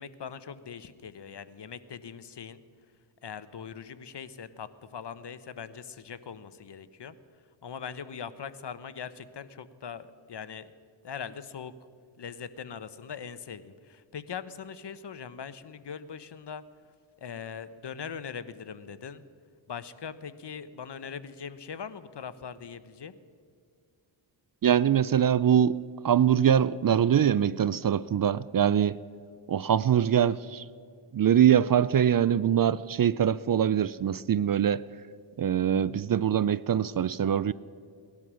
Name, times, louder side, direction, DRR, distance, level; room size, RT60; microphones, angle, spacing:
voice 1, 0.0-2.6 3.2-7.1 7.6-10.7 11.0-11.7 12.2-16.6 17.2-19.2 19.7-23.1, left 7 dB, 55° left, 0.9 m, -41 dB
voice 2, 24.6-25.8 26.0-29.0 29.5-30.7 31.1-34.8 35.4-37.5, right 9 dB, 45° right, 0.4 m, -23 dB
18.5 x 12.0 x 6.2 m
cardioid pair, 60°, 50 cm